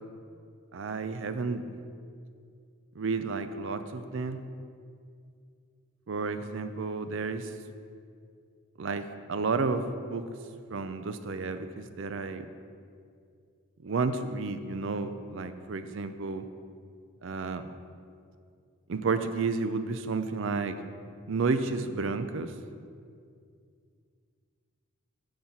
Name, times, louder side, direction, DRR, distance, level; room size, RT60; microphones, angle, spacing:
voice 1, 0.7-1.6 3.0-4.4 6.1-7.5 8.8-10.2 10.7-12.5 13.8-16.5 17.2-17.7 18.9-20.7 21.3-22.5, right 4 dB, 60° right, 10 dB, 0.5 m, -31 dB
8.6 x 4.1 x 7.1 m, 2.3 s
head